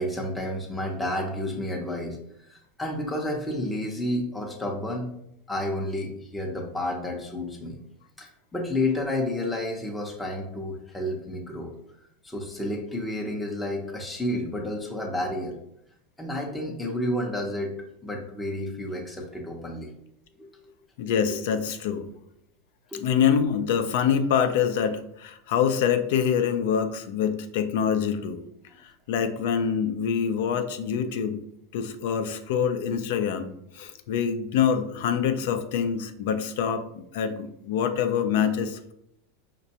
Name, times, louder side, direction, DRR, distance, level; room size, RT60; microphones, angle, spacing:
voice 1, 0.0-2.2 2.5-5.1 5.5-7.8 8.2-11.7 12.2-15.6 16.2-17.7 18.0-19.9 20.4-20.5 21.3-21.4 22.9-23.2, left 1 dB, 5° left, -1 dB, 0.6 m, -30 dB
voice 2, 21.0-22.1 23.0-28.4 28.8-31.4 31.7-38.9, left 7 dB, 65° left, 9 dB, 0.4 m, -25 dB
5.0 x 2.2 x 2.8 m, 0.77 s
supercardioid pair, 130°, 0 cm